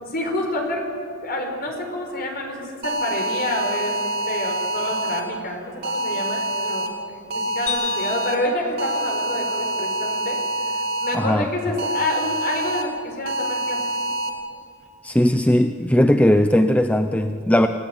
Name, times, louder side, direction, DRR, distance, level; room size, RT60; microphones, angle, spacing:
voice 1, 0.0-0.9 1.2-6.9 7.3-10.4 11.0-13.9, left 1 dB, 45° left, 2 dB, 4.9 m, -28 dB
sound 1, 2.8-5.2 5.8-6.9 7.3-8.4 8.8-11.1 11.8-12.8 13.3-14.3, right 1 dB, 45° right, 3.3 m, -26 dB
sound 2, 7.7-10.0, left 9 dB, 85° left, 2.1 m, -34 dB
voice 2, 11.1-11.5 15.0-17.7, left 1 dB, 5° left, 7 dB, 0.6 m, -18 dB
27.5 x 16.5 x 9.3 m, 2.5 s
head